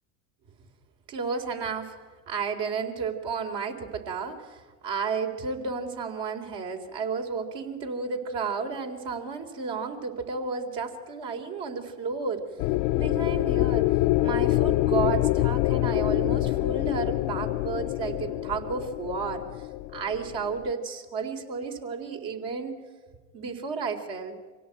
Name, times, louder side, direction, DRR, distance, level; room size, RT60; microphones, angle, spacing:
voice 1, 1.1-2.0 2.3-12.4 13.0-13.8 14.2-19.4 19.9-22.8 23.3-24.4, right 5 dB, 60° right, 3 dB, 4.1 m, -32 dB
sound 1, 12.6-20.7, left 18 dB, 65° left, 0.6 m, -26 dB
26.5 x 17.0 x 9.2 m, 1.4 s
hypercardioid pair, 90°, 44 cm